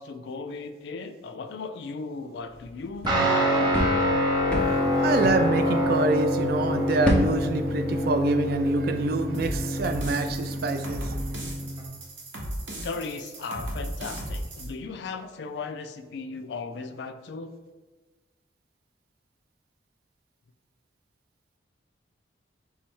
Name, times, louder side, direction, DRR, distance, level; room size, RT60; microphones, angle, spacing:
voice 1, 0.0-4.0 12.8-17.5, left 4 dB, 60° left, 8 dB, 0.3 m, -36 dB
sound 1, 2.6-6.3 6.7-8.7 8.9-9.2, equal, 5° left, 0.6 m, -31 dB
Guitar, 3.1-11.9, left 1 dB, 25° right, 0.7 m, -26 dB
voice 2, 4.5-11.2, right 3 dB, 55° right, 8 dB, 0.3 m, -26 dB
sound 2, 9.3-14.7, right 1 dB, 70° right, 1.0 m, -36 dB
3.4 x 3.2 x 4.5 m, 1.2 s
head